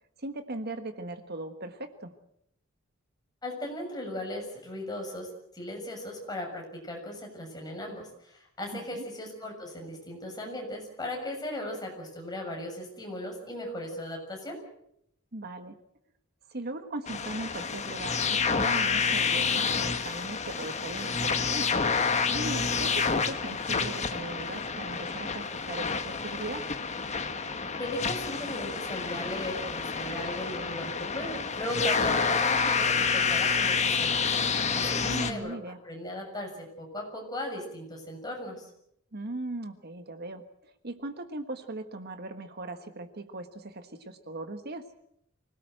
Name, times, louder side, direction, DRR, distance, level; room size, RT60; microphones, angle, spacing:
voice 1, 0.2-2.1 8.7-9.0 15.3-15.7 16.5-26.7 35.0-35.8 39.1-44.9, right 2 dB, 50° right, 8 dB, 1.4 m, -39 dB
voice 2, 3.4-14.6 27.8-34.1 34.7-38.7, left 1 dB, 20° left, 1 dB, 6.9 m, -37 dB
sound 1, 17.1-35.3, left 5 dB, 35° left, 1.5 m, -28 dB
25.0 x 18.0 x 7.8 m, 0.74 s
head